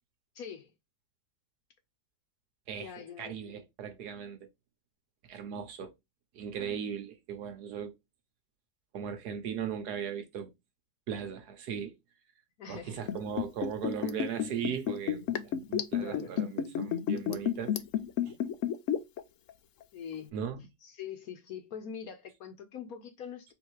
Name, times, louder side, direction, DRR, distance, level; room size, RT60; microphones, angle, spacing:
voice 1, 0.3-0.7 2.8-3.6 12.6-13.0 14.9-15.0 16.0-16.3 19.9-20.4 20.8-23.5, left 7 dB, 65° left, 1.1 m, -43 dB
voice 2, 3.2-4.4 5.3-5.9 6.3-7.9 8.9-10.5 11.1-11.9 12.7-17.7 18.3-18.4 20.3-20.6, right 8 dB, 70° right, 1.2 m, -38 dB
Liquid, 13.0-19.2 19.5-19.6, left 9 dB, 85° left, 0.6 m, -31 dB
3.9 x 2.7 x 4.4 m
omnidirectional pair, 1.9 m